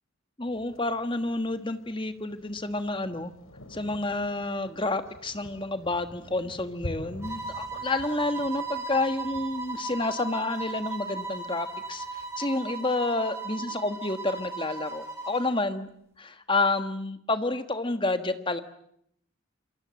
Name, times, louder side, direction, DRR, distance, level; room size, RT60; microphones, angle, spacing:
voice 1, 0.4-3.3 3.7-15.9 16.2-18.6, left 2 dB, 25° left, 9 dB, 1.4 m, -29 dB
Thunder, 0.5-12.5, left 1 dB, 80° left, 2.3 m, -47 dB
sound 1, 7.2-15.6, right 3 dB, 15° right, 4.3 m, -37 dB
27.5 x 23.0 x 7.7 m, 0.73 s
head